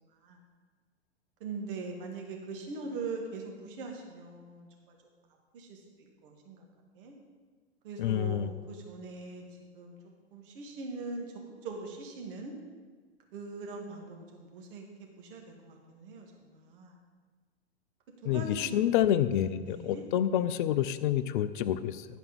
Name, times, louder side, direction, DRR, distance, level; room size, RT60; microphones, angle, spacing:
voice 1, 1.4-5.0 5.5-5.8 6.2-6.7 7.0-7.1 7.8-9.4 9.7-10.0 10.3-11.3 11.6-12.6 13.3-16.9 18.2-18.8 19.3-20.0, right 3 dB, 50° right, 1 dB, 2.1 m, -41 dB
voice 2, 8.0-8.5 18.3-22.1, left 11 dB, 45° left, 13 dB, 0.5 m, -28 dB
10.5 x 5.1 x 6.0 m, 1.4 s
hypercardioid pair, 110°, 35 cm